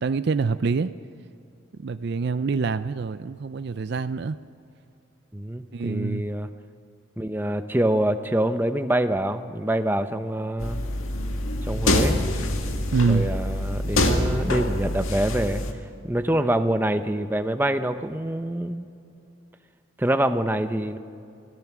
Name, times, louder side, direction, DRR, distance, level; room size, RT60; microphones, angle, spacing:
voice 1, 0.0-0.9 1.8-4.4 5.7-6.2 12.9-13.2, right 4 dB, 50° right, 12 dB, 0.4 m, -25 dB
voice 2, 5.3-6.5 7.2-10.8 11.7-12.2 13.1-15.6 16.0-18.9 20.0-21.0, right 1 dB, 10° right, 9 dB, 0.6 m, -25 dB
sound 1, 10.6-15.7, left 1 dB, 80° left, 1.9 m, -25 dB
26.0 x 17.0 x 6.1 m, 2.5 s
head